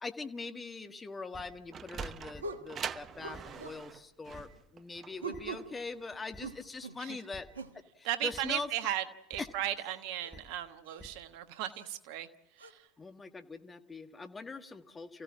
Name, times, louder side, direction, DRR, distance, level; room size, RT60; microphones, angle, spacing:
voice 1, 0.0-7.5 8.0-8.7 9.4-9.5 13.0-15.2, left 4 dB, 20° left, 7 dB, 1.7 m, -42 dB
sound 1, 1.3-1.4 2.3-2.4 3.3-3.4 4.3-4.4 5.3-5.4 6.3-6.4 7.3-7.4 8.3-8.4 9.3-9.4 10.3-10.4 11.0-11.1, left 1 dB, ahead, 5.7 m, -49 dB
sound 2, 1.3-1.5 2.4-2.7 3.2-3.8 5.2-5.7 6.4-7.0 7.5-7.8 9.4-9.5 10.2-10.3 10.9-11.0 11.7-11.9 12.6-12.7, right 4 dB, 85° right, 1.2 m, -42 dB
Sliding door, 1.5-6.6, right 7 dB, 35° right, 0.8 m, -43 dB
voice 2, 8.0-9.0 9.3-12.3 12.6-12.9, right 12 dB, 60° right, 11 dB, 1.3 m, -36 dB
28.5 x 16.0 x 7.4 m, 0.88 s
hypercardioid pair, 75°, 0 cm